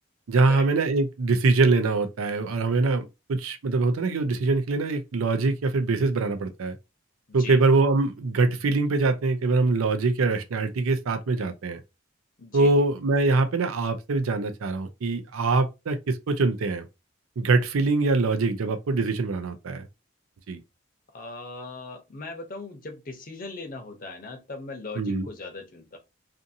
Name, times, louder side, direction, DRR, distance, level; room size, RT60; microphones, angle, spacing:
voice 1, 0.3-6.8 7.3-11.8 12.5-16.9 17.4-19.9 20.5-20.6 25.0-25.3, right 3 dB, 85° right, 0.5 m, -23 dB
voice 2, 7.3-7.6 12.4-12.9 21.1-26.0, left 3 dB, 40° left, 0.6 m, -39 dB
2.6 x 2.5 x 2.6 m
head